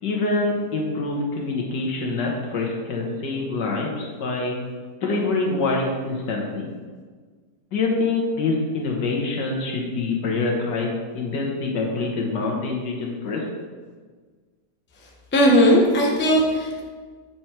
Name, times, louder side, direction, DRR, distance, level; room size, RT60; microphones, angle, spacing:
voice 1, 0.0-4.6 5.0-6.7 7.7-13.4, left 3 dB, 80° left, -1 dB, 1.9 m, -25 dB
voice 2, 15.3-16.8, equal, 10° left, -2 dB, 0.6 m, -17 dB
7.2 x 4.7 x 4.5 m, 1.5 s
omnidirectional pair, 1.8 m